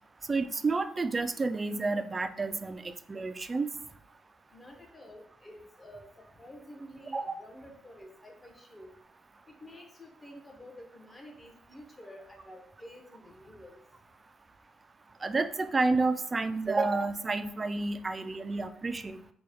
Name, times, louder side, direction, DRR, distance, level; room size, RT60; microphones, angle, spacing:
voice 1, 0.3-2.8 3.1-3.7 7.1-7.3 15.2-19.2, right 3 dB, 30° right, 10 dB, 0.3 m, -30 dB
voice 2, 4.5-8.9 9.6-13.8, equal, 25° left, 2 dB, 1.0 m, -50 dB
4.4 x 2.2 x 3.5 m, 0.66 s
cardioid pair, 90°, 0 cm